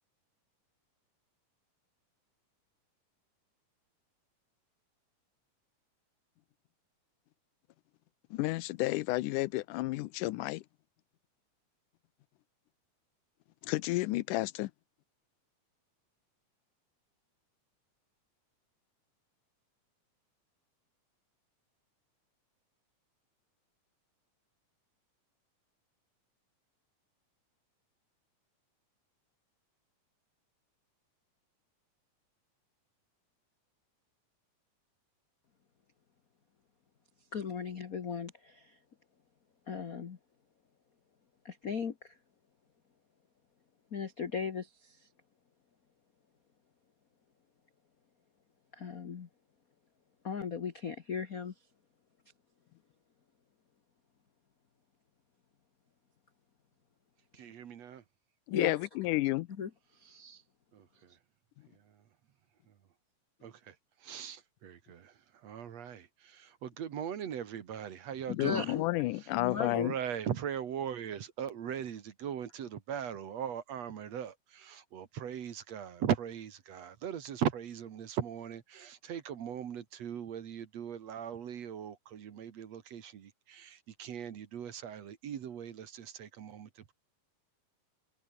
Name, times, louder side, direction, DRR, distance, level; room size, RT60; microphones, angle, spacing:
voice 1, 8.3-10.6 13.6-14.7 58.5-59.5 68.3-69.9, left 18 dB, 85° left, 2.2 m, -31 dB
voice 2, 37.3-38.7 39.7-40.2 41.4-42.1 43.9-45.0 48.8-49.3 50.2-51.5 57.4-57.5 58.5-58.7 59.6-59.7 60.0-60.4 68.4-69.9, left 6 dB, 70° left, 0.8 m, -38 dB
voice 3, 57.3-58.0 60.7-61.1 63.4-63.8 64.0-65.1 65.4-68.8 69.4-86.9, right 9 dB, 60° right, 2.7 m, -39 dB
omnidirectional pair, 3.6 m